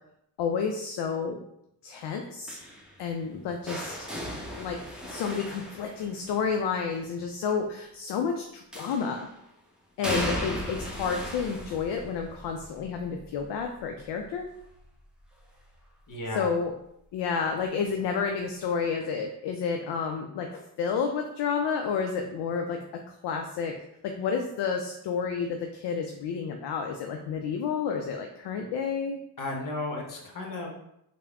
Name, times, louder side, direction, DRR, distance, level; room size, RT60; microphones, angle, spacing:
voice 1, 0.4-1.4 1.8-2.6 3.0-4.0 4.5-9.3 10.0-14.5 16.4-16.7 17.1-22.8 23.2-23.8 24.0-29.2, left 6 dB, 65° left, 4 dB, 0.5 m, -30 dB
sound 1, 2.5-6.5 8.7-9.3 10.0-15.8 16.2-16.6 17.8-17.9, equal, ahead, 0.8 m, -37 dB
voice 2, 16.1-16.5 29.4-30.7, left 2 dB, 45° left, 1 dB, 1.0 m, -34 dB
3.3 x 2.2 x 3.4 m, 0.79 s
supercardioid pair, 50°, 45 cm